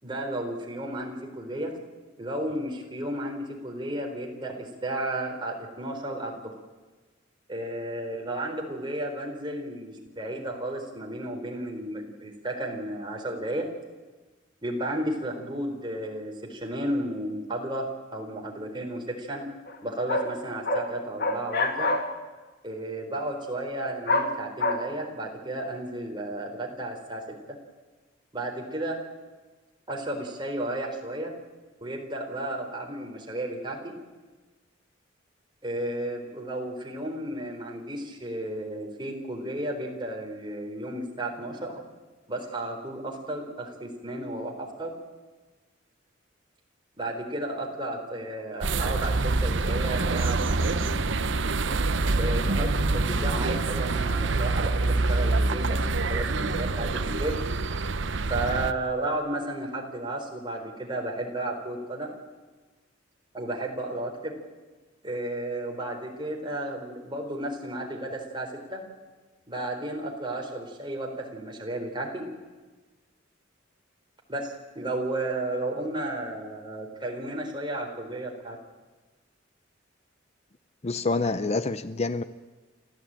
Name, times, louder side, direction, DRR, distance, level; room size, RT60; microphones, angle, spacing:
voice 1, 0.0-1.8 2.2-6.4 7.5-13.7 14.6-17.9 18.1-19.4 19.8-21.9 22.6-27.2 28.3-29.0 29.9-31.3 31.8-33.9 35.6-41.8 42.3-44.9 47.0-50.9 52.1-57.4 58.3-62.1 63.3-64.3 65.0-68.8 69.5-72.2 74.3-78.6, right 1 dB, 25° right, 2 dB, 4.0 m, -33 dB
sound 1, 19.7-19.8 20.1-20.3 20.7-20.9 21.2-22.0 24.1-24.3 24.6-24.7, left 2 dB, 55° left, 2.3 m, -25 dB
sound 2, 48.6-58.7, right 3 dB, 65° right, 0.9 m, -26 dB
voice 2, 80.8-82.2, left 3 dB, 35° left, 13 dB, 0.6 m, -27 dB
29.0 x 14.0 x 8.9 m, 1.3 s
head